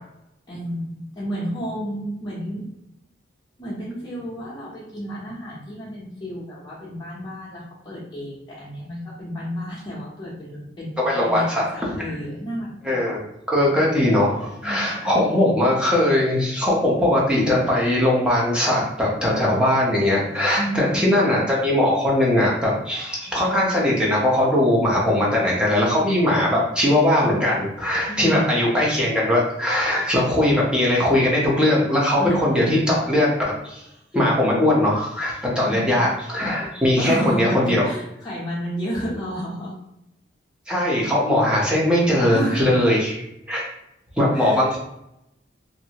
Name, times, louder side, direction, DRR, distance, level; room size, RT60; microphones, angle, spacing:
voice 1, 0.5-2.7 3.6-13.1 14.6-15.6 20.6-21.1 28.1-28.5 32.2-32.8 35.6-36.1 37.0-39.7 42.3-42.7 44.3-44.7, equal, 25° left, -10 dB, 0.8 m, -31 dB
voice 2, 11.0-12.0 12.8-13.2 13.5-33.3 33.6-33.8 34.1-37.9 40.7-43.2 43.5-43.6 44.2-44.8, left 1 dB, 5° right, -5 dB, 0.8 m, -20 dB
2.7 x 2.6 x 2.9 m, 0.84 s
head